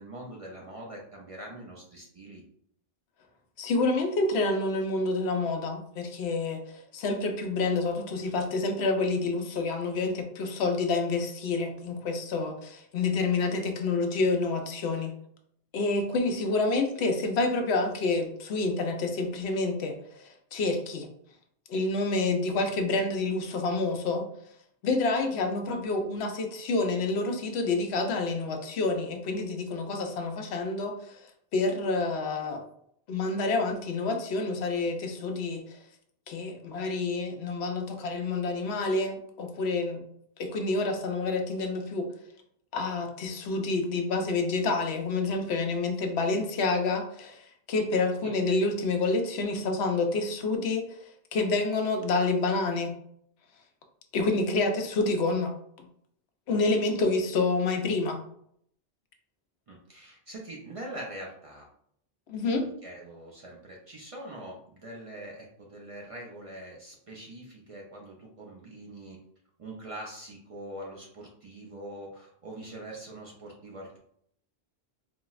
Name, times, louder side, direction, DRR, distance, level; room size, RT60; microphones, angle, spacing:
voice 1, 0.0-2.4 48.2-48.3 59.7-61.7 62.8-69.2 69.6-74.0, right 1 dB, 45° right, -2 dB, 0.4 m, -43 dB
voice 2, 3.6-15.1 15.7-21.1 21.7-24.3 24.8-31.2 31.5-32.6 33.1-35.8 36.3-40.0 40.4-42.1 42.7-50.8 51.3-52.9 54.1-55.5 56.5-58.2 62.3-62.7, left 3 dB, 90° left, 5 dB, 0.8 m, -28 dB
4.1 x 2.0 x 2.3 m, 0.68 s
omnidirectional pair, 1.0 m